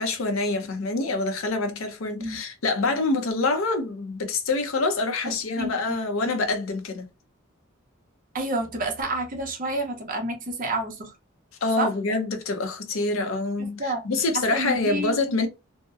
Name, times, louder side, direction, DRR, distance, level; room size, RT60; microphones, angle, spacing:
voice 1, 0.0-7.1 11.6-15.5, left 3 dB, 80° left, 0.6 m, -26 dB
voice 2, 5.6-5.9 8.3-11.1 11.8-11.9 13.8-14.0 14.3-15.1, right 2 dB, 40° right, 0.7 m, -29 dB
2.7 x 2.0 x 2.3 m
head